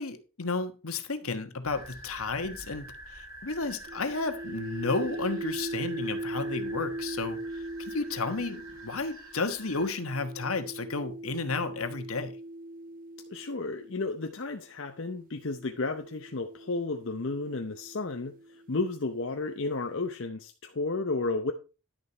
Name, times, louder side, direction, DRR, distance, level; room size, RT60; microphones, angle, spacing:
voice 1, 0.0-7.4 7.9-12.4, left 3 dB, 70° left, 1.3 m, -32 dB
sound 1, 1.6-9.9, right 1 dB, 70° right, 6.0 m, -47 dB
sound 2, 3.9-14.2 15.1-18.9, right 1 dB, 40° right, 0.5 m, -40 dB
voice 2, 13.3-18.3 18.7-21.5, left 3 dB, 55° left, 0.7 m, -32 dB
11.0 x 6.9 x 4.4 m
head